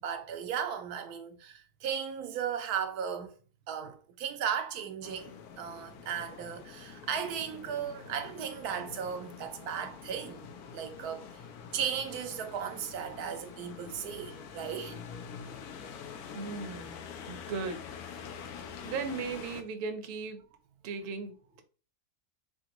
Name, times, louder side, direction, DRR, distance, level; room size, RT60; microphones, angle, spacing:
voice 1, 0.0-3.3 3.7-11.4 11.7-15.1, right 8 dB, 90° right, 1.2 m, -36 dB
sound 1, 5.0-19.6, left 6 dB, 85° left, 1.1 m, -46 dB
voice 2, 16.3-17.0 17.3-17.8 18.8-20.4 20.8-21.6, right 4 dB, 55° right, 0.7 m, -37 dB
3.7 x 3.5 x 2.9 m
omnidirectional pair, 1.6 m